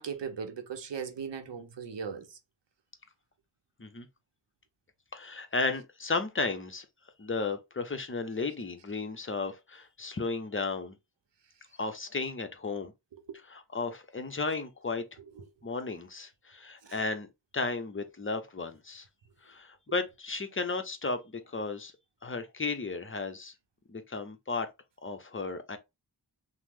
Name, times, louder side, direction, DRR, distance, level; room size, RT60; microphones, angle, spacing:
voice 1, 0.0-2.4 13.1-13.4 15.4-15.5 16.8-17.0, right 6 dB, 80° right, 0.6 m, -39 dB
voice 2, 5.1-6.8 7.2-11.0 11.8-12.9 13.5-15.0 15.6-17.3 17.5-19.1 19.4-21.9 22.2-23.5 23.9-24.7 25.0-25.8, left 3 dB, 30° left, 0.6 m, -34 dB
2.9 x 2.0 x 3.4 m
wide cardioid pair, 45°, 42 cm